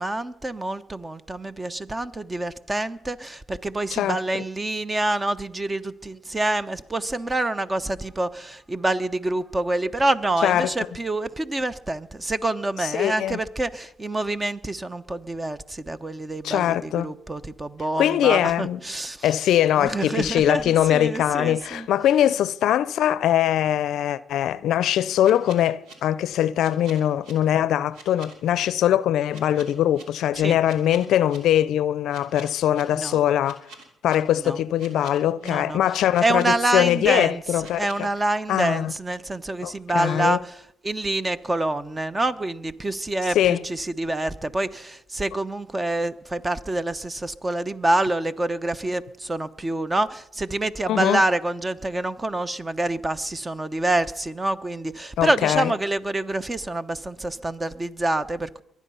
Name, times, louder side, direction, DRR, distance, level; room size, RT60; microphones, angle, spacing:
voice 1, 0.0-19.3 19.8-21.9 30.4-30.6 33.0-33.2 34.4-34.6 35.4-35.8 36.2-37.4 37.8-40.5 40.8-43.4 43.6-58.6, right 2 dB, 20° right, 1.0 m, -26 dB
voice 2, 10.4-10.7 12.8-13.4 16.4-17.1 18.0-18.8 19.2-33.6 34.0-38.1 38.5-38.9 39.6-40.4 43.3-43.6 50.9-51.2 55.2-55.7, left 11 dB, 75° left, 0.5 m, -22 dB
sound 1, 25.2-25.9 26.6-27.3 27.9-28.7 29.3-30.0 30.6-31.4 32.1-32.8 33.4-34.2 34.8-35.5 36.1-36.8 37.6-38.0, right 3 dB, 80° right, 3.0 m, -45 dB
23.0 x 9.6 x 5.6 m
supercardioid pair, 65°, 0 cm